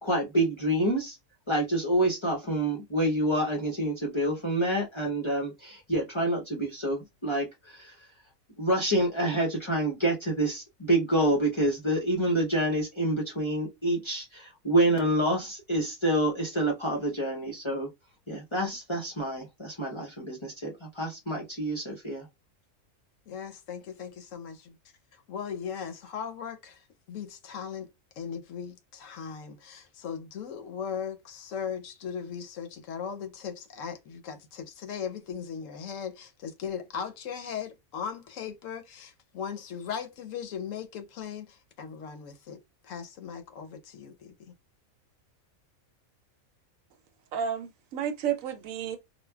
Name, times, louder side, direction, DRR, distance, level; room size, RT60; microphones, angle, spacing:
voice 1, 0.0-1.2 1.5-7.9 8.6-17.9 18.3-22.3, right 1 dB, 30° left, 0.5 m, -27 dB
voice 2, 23.3-24.8 25.3-26.8 27.1-27.9 28.2-42.6 42.8-44.5, left 7 dB, 70° left, 1.0 m, -38 dB
voice 3, 47.3-49.0, right 8 dB, 75° right, 0.9 m, -31 dB
4.3 x 2.2 x 2.2 m
omnidirectional pair, 1.5 m